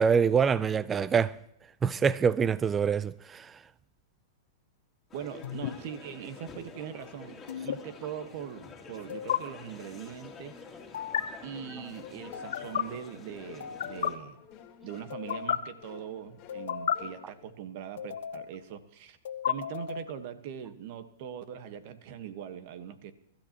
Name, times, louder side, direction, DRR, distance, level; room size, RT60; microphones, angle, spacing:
voice 1, 0.0-1.3 1.8-3.6, right 6 dB, 20° right, 0.4 m, -25 dB
sound 1, 5.1-14.2, left 5 dB, 20° left, 2.7 m, -48 dB
voice 2, 5.1-10.6 11.4-14.4 14.8-19.2 19.5-23.1, right 9 dB, 55° right, 1.3 m, -41 dB
sound 2, 5.4-5.7 7.5-7.8 9.1-9.4 10.9-11.2 12.3-12.8 13.6-14.1 15.1-15.6 16.5-17.0 18.0-18.6 19.3-20.1, left 9 dB, 75° left, 1.1 m, -32 dB
sound 3, 11.5-17.5, left 9 dB, 45° left, 2.3 m, -51 dB
23.0 x 13.0 x 3.0 m
hypercardioid pair, 130°, 0 cm